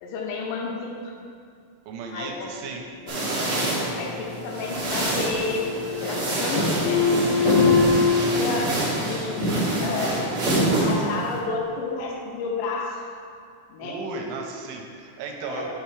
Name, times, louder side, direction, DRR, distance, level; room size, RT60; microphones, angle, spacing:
voice 1, 0.0-1.1 2.1-2.5 3.0-3.4 4.0-7.9 8.2-10.3 10.7-13.0 13.7-14.0 15.4-15.7, left 3 dB, 90° left, 0 dB, 3.6 m, -31 dB
voice 2, 1.9-2.9 13.8-15.7, right 4 dB, 85° right, 1 dB, 3.2 m, -35 dB
sound 1, 3.1-11.4, right 1 dB, 55° right, 1.5 m, -26 dB
sound 2, 4.0-5.0 5.3-6.2 6.5-8.1, left 5 dB, 65° left, 2.7 m, -23 dB
7.2 x 5.7 x 4.5 m, 2.4 s
omnidirectional pair, 5.7 m